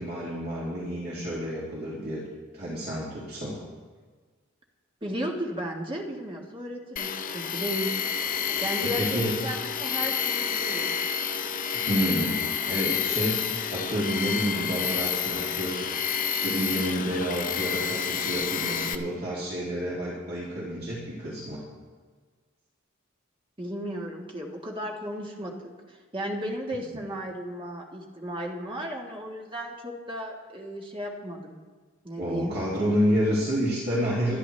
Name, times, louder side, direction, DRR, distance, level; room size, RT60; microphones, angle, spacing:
voice 1, 0.0-2.2 2.5-3.6 8.8-9.4 11.7-13.4 13.7-21.6 26.7-26.8 32.2-34.4, equal, 50° right, -7 dB, 2.5 m, -29 dB
voice 2, 5.0-7.9 8.4-11.0 23.6-31.6 32.0-32.5, equal, 25° right, -1 dB, 1.5 m, -35 dB
Tools, 7.0-19.0, left 7 dB, 40° left, 0.6 m, -29 dB
24.5 x 10.0 x 3.3 m, 1.5 s
head